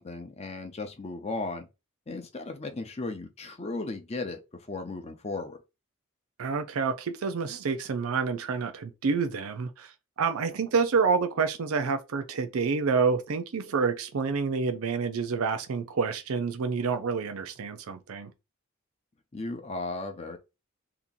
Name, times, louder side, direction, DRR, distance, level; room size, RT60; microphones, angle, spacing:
voice 1, 0.0-1.7 2.1-5.6 19.3-20.4, left 3 dB, 30° left, 0.5 m, -36 dB
voice 2, 6.4-9.9 10.2-18.3, right 5 dB, 90° right, 0.5 m, -28 dB
2.9 x 2.5 x 3.7 m
head